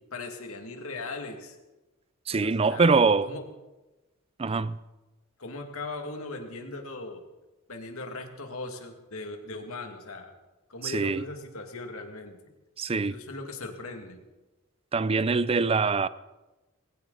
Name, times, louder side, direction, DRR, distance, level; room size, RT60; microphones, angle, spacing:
voice 1, 0.0-1.6 2.3-3.4 5.4-7.2 7.7-10.3 10.7-12.4 13.0-14.2, left 2 dB, 85° left, 2.3 m, -39 dB
voice 2, 2.3-3.3 4.4-4.8 10.8-11.2 12.8-13.1 14.9-16.1, right 4 dB, 25° right, 0.4 m, -24 dB
20.5 x 16.5 x 4.1 m
head